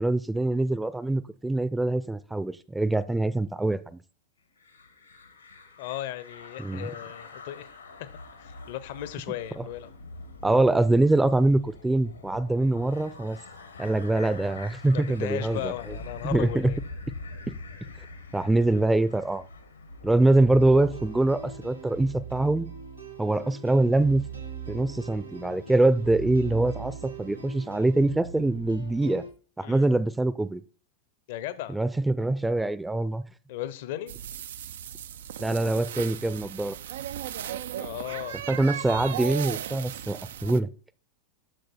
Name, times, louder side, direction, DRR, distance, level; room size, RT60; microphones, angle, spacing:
voice 1, 0.0-4.0 6.6-6.9 10.4-13.4 13.8-15.7 16.2-16.7 17.5-17.6 18.3-19.4 20.0-22.7 23.2-24.2 24.7-29.2 29.6-30.6 31.7-33.2 35.4-36.7 38.5-40.7, right 2 dB, 5° right, 0.6 m, -24 dB
sound 1, 4.6-21.6, left 3 dB, 80° left, 1.6 m, -44 dB
voice 2, 5.8-7.7 8.0-8.1 8.4-9.9 14.9-16.8 29.6-29.9 31.3-31.8 33.5-34.1 37.8-38.4, left 13 dB, 50° left, 0.9 m, -36 dB
sound 2, 20.4-29.3, right 5 dB, 90° right, 2.9 m, -40 dB
sound 3, 34.1-40.6, right 10 dB, 60° right, 0.4 m, -36 dB
7.8 x 6.7 x 4.3 m
figure-of-eight pair, 90°, 0 cm